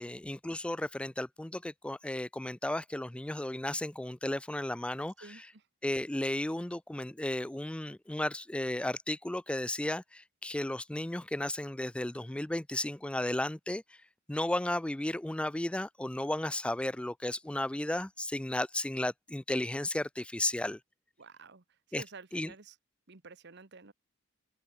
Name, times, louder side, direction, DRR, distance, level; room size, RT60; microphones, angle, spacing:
voice 1, 0.0-5.5 5.8-14.0 14.3-20.8 21.9-22.0 22.3-22.5, left 1 dB, 5° left, 0.3 m, -34 dB
voice 2, 5.2-5.6 21.2-22.7 23.1-23.9, right 4 dB, 60° right, 1.4 m, -51 dB
open air
head